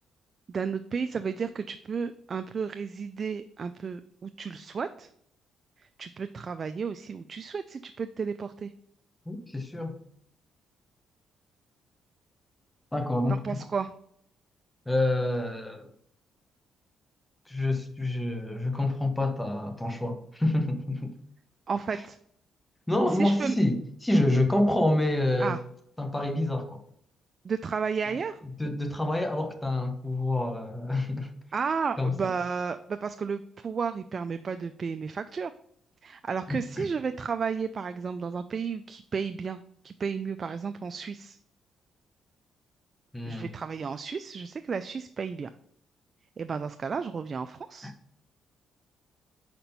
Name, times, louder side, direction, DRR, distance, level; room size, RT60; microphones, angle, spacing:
voice 1, 0.5-5.1 5.8-8.7 13.3-13.9 21.7-22.2 23.2-23.6 25.4-25.6 27.4-28.4 31.5-35.5 36.0-41.4 43.2-45.5 46.4-47.9, right 5 dB, 40° right, 0.3 m, -33 dB
voice 2, 9.3-10.0 12.9-13.7 14.9-15.9 17.5-21.1 22.9-25.6 26.0-26.8 28.6-31.3 32.0-32.3 36.5-36.9 43.1-43.5 47.8-47.9, left 1 dB, 10° left, 1.0 m, -27 dB
5.0 x 4.4 x 5.4 m
cardioid pair, 90°, 0 cm